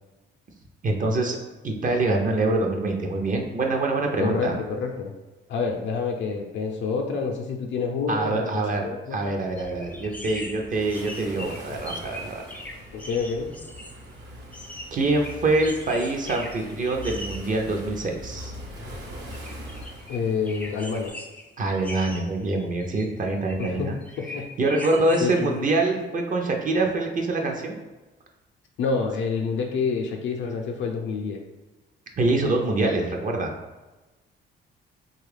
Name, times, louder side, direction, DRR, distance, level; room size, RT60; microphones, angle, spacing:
voice 1, 0.8-4.6 8.1-8.8 9.1-12.4 14.9-18.5 21.6-24.0 24.6-27.8 32.2-33.5, right 2 dB, 40° right, 1 dB, 0.5 m, -25 dB
voice 2, 4.2-5.1 5.5-9.3 12.9-13.5 20.1-21.1 23.6-23.9 24.2-24.5 25.2-25.6 28.8-31.4, left 5 dB, 70° left, 2 dB, 0.5 m, -28 dB
sound 1, 9.5-19.9, left 1 dB, 85° right, 0.8 m, -44 dB
sound 2, 9.6-14.1 14.5-17.5 18.1-18.2 19.3-20.2 20.5-21.5 21.7-23.8 24.0-25.4, left 1 dB, 10° left, 0.4 m, -40 dB
Waves surf, 10.7-21.1, right 1 dB, 65° right, 1.0 m, -44 dB
3.1 x 2.3 x 3.3 m, 1.1 s
cardioid pair, 90°, 20 cm